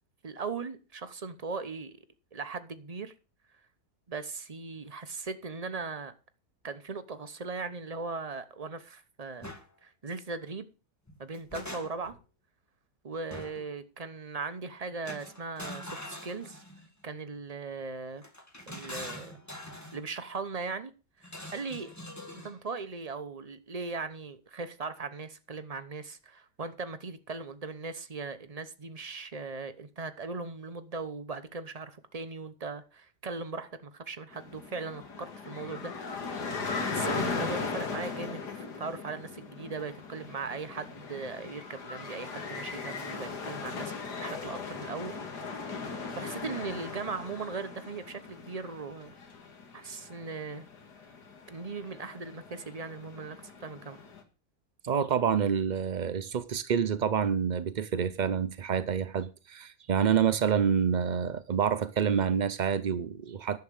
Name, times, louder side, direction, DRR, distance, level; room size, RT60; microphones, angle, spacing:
voice 1, 0.2-2.0 2.3-3.1 4.1-6.1 6.6-9.5 9.8-10.7 11.2-12.1 13.0-16.6 17.0-18.2 18.7-19.4 19.9-21.9 22.3-36.5 36.8-43.9 44.2-45.1 45.5-49.1 49.7-50.6 51.5-54.0, right 4 dB, 30° right, 0.8 m, -39 dB
sound 1, 9.4-9.6 11.1-12.2 13.3-13.7 15.0-16.9 18.2-20.0 21.2-22.6, left 1 dB, 10° left, 1.7 m, -43 dB
sound 2, 34.3-54.2, left 4 dB, 85° left, 2.4 m, -39 dB
voice 2, 54.8-63.6, right 7 dB, 80° right, 0.4 m, -27 dB
10.5 x 7.2 x 6.4 m
omnidirectional pair, 1.7 m